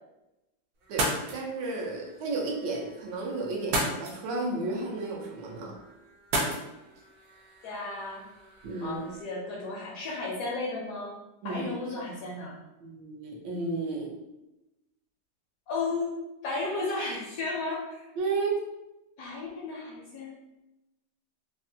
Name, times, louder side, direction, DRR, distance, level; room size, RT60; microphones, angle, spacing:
sound 1, 0.8-9.2, right 1 dB, 70° right, 1.1 m, -36 dB
voice 1, 0.9-5.7 8.6-9.0 11.4-11.8 12.8-14.1 18.2-18.6, right 3 dB, 85° right, -1 dB, 1.4 m, -32 dB
voice 2, 7.6-8.3 8.8-11.1 11.4-12.6 15.7-16.2 16.4-18.1 19.2-20.3, left 3 dB, 70° left, -3 dB, 0.9 m, -34 dB
3.5 x 2.1 x 2.7 m, 0.96 s
omnidirectional pair, 1.9 m